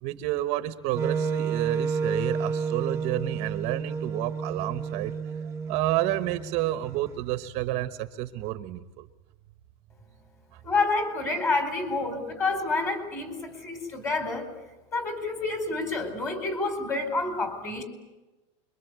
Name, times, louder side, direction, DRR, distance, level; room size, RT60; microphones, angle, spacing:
voice 1, 0.0-5.1 5.4-9.1 12.1-12.2, right 15 dB, 45° right, 11 dB, 1.2 m, -30 dB
Wind instrument woodwind instrument, 0.9-7.0, right 5 dB, 20° right, 1.2 m, -31 dB
voice 2, 10.6-14.5 14.9-17.8, left 3 dB, 15° left, 8 dB, 4.4 m, -28 dB
26.0 x 23.5 x 8.3 m, 1.1 s
supercardioid pair, 160°, 15 cm